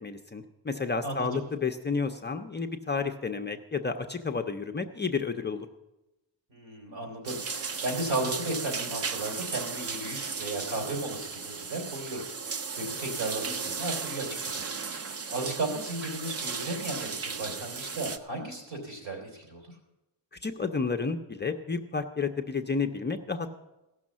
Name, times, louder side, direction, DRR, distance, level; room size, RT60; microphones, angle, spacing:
voice 1, 0.0-5.7 20.4-23.5, left 4 dB, 25° left, 5 dB, 0.4 m, -31 dB
voice 2, 1.0-1.4 6.5-14.6 14.9-19.7, right 2 dB, 70° right, 2 dB, 3.4 m, -35 dB
sound 1, 7.3-18.2, right 5 dB, 35° right, 0.5 m, -35 dB
15.5 x 6.2 x 7.3 m, 0.97 s
wide cardioid pair, 175°, 45 cm